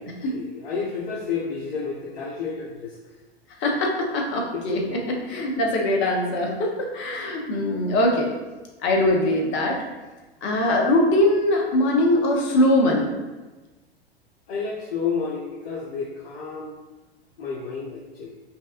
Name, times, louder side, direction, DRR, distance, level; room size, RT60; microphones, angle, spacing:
voice 1, 0.0-3.1 4.5-5.0 7.1-7.2 14.5-16.7 17.4-18.3, left 5 dB, 65° left, -4 dB, 0.8 m, -31 dB
voice 2, 3.6-8.3 8.8-9.8 10.4-13.2, left 1 dB, 35° left, 0 dB, 1.0 m, -22 dB
5.4 x 2.4 x 2.5 m, 1.2 s
hypercardioid pair, 105°, 32 cm